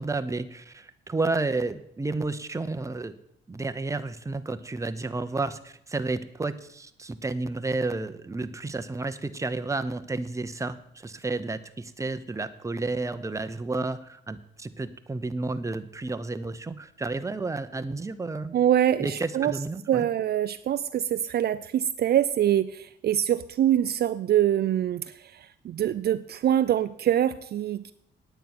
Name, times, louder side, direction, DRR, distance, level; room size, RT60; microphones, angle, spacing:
voice 1, 0.0-3.1 3.5-18.6 19.0-20.1, right 3 dB, 15° right, 10 dB, 0.8 m, -31 dB
voice 2, 18.5-19.6 19.9-27.9, right 11 dB, 55° right, 13 dB, 0.4 m, -24 dB
9.2 x 9.1 x 6.0 m, 0.71 s
cardioid pair, 90°, 20 cm